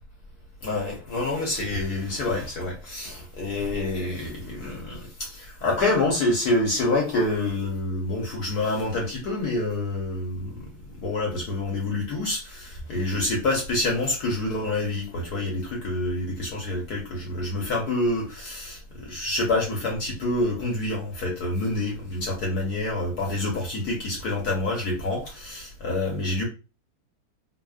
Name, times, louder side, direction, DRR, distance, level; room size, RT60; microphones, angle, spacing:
voice 1, 0.6-10.7 10.9-26.5, left 2 dB, 60° left, 1.1 m, -27 dB
3.4 x 2.1 x 2.3 m
omnidirectional pair, 2.4 m